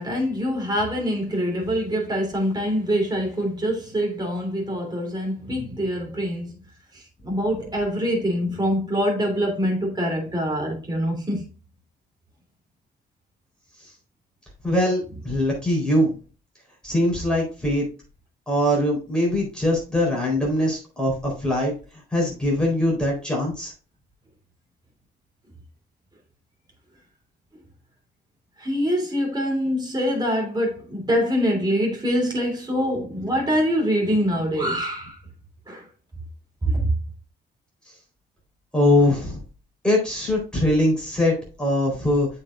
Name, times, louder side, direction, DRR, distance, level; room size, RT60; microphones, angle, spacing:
voice 1, 0.0-6.6 6.9-11.4 28.6-35.2 35.7-35.9 36.6-36.9, equal, 20° right, 3.2 m, -24 dB
voice 2, 14.6-16.2 16.8-17.9 18.5-21.7 22.1-23.7 38.7-39.4 39.8-42.3, left 1 dB, 5° left, 4.0 m, -22 dB
8.5 x 5.6 x 2.5 m
cardioid pair, 90°, 20 cm